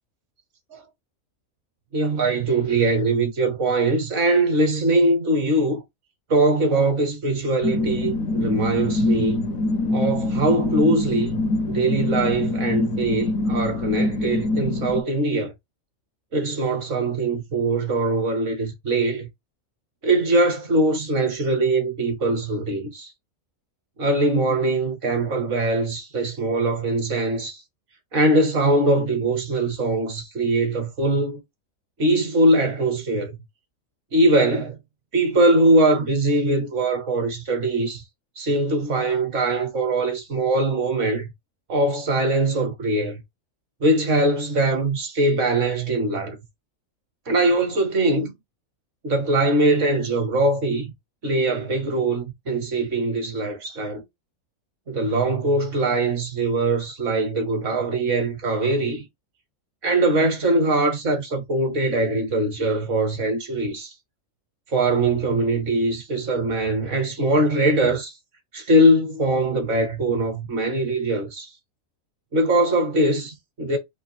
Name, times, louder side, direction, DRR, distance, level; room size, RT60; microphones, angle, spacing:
voice 1, 1.9-5.8 6.3-9.5 9.9-11.4 11.7-15.5 16.3-19.3 20.0-23.1 24.0-27.6 28.1-31.4 32.0-33.4 34.1-34.8 35.1-38.0 38.4-41.3 41.7-43.2 43.8-46.4 47.3-48.3 49.0-50.9 51.2-54.0 54.9-59.0 59.8-63.9 64.7-68.1 68.5-71.5 72.3-73.8, right 2 dB, 60° right, 1.4 m, -22 dB
sound 1, 7.6-15.0, left 2 dB, 80° left, 1.0 m, -24 dB
3.7 x 2.9 x 3.1 m
omnidirectional pair, 1.4 m